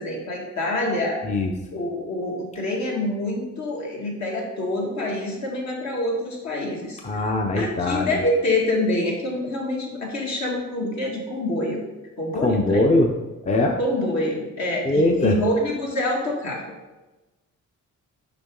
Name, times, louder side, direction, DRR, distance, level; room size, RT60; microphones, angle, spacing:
voice 1, 0.0-1.2 1.7-11.8 12.2-12.9 13.8-16.6, left 1 dB, 65° left, -2 dB, 2.0 m, -26 dB
voice 2, 7.0-8.2 12.4-13.1 13.4-13.8 14.8-15.4, left 2 dB, 25° left, 3 dB, 0.6 m, -21 dB
6.8 x 5.2 x 3.8 m, 1.1 s
cardioid pair, 105°, 30 cm